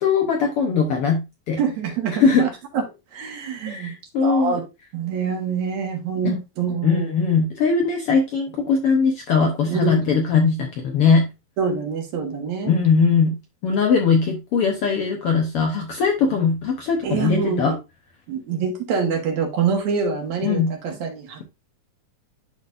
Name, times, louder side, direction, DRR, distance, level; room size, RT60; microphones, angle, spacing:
voice 1, 0.0-1.6 2.2-2.5 3.7-4.6 6.2-6.4 6.8-11.3 12.7-13.4 13.6-17.7 20.4-20.7, left 5 dB, 65° left, 1.5 m, -20 dB
voice 2, 1.6-2.8 3.1-3.9 4.2-4.6 4.9-7.1 9.7-10.1 11.6-12.7 17.0-17.7 18.3-21.4, right 6 dB, 70° right, 2.7 m, -25 dB
11.5 x 4.0 x 2.6 m
omnidirectional pair, 3.6 m